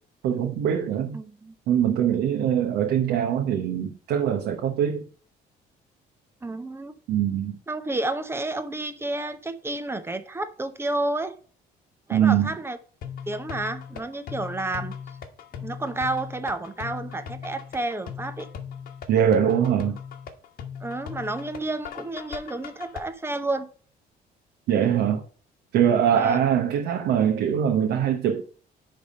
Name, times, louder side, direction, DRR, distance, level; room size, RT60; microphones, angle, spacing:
voice 1, 0.2-1.2 1.7-5.0 7.1-7.6 12.1-12.5 19.1-20.0 24.7-25.2 25.7-28.4, right 9 dB, 80° right, 1.0 m, -22 dB
voice 2, 1.1-1.5 6.4-7.0 7.7-11.4 12.1-12.8 13.3-15.0 15.6-18.5 20.8-23.7 26.1-26.4, right 2 dB, 15° right, 0.8 m, -30 dB
sound 1, 13.0-23.0, left 7 dB, 60° left, 1.3 m, -38 dB
10.0 x 3.6 x 5.4 m
cardioid pair, 110°, 17 cm